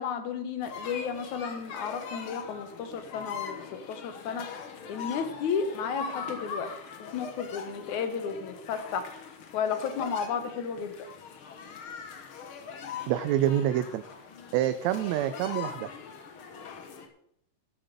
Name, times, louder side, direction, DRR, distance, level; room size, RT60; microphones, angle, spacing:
voice 1, 0.0-3.6 3.9-4.5 4.9-6.7 7.1-9.1 9.5-10.9, left 6 dB, 80° left, 9 dB, 2.7 m, -33 dB
sound 1, 0.6-17.1, left 6 dB, 55° left, 1.8 m, -41 dB
voice 2, 13.1-14.0 14.5-15.9, right 12 dB, 80° right, 11 dB, 1.8 m, -27 dB
12.5 x 7.3 x 6.8 m, 0.73 s
omnidirectional pair, 3.3 m